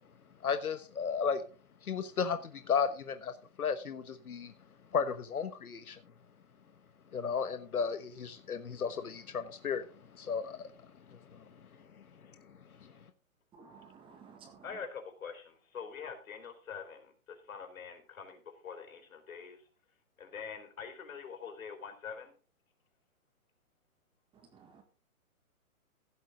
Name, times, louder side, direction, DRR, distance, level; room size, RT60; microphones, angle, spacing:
voice 1, 0.4-1.4 1.8-4.5 4.9-6.0 7.1-9.9 10.1-10.7 11.3-11.4, left 6 dB, 85° left, 10 dB, 1.3 m, -34 dB
voice 2, 13.5-14.6 24.5-24.8, right 5 dB, 10° right, 5 dB, 1.6 m, -55 dB
voice 3, 14.6-19.6 20.2-22.3, left 6 dB, 70° left, 6 dB, 3.9 m, -45 dB
16.0 x 8.1 x 3.8 m, 0.37 s
hypercardioid pair, 150°, 43 cm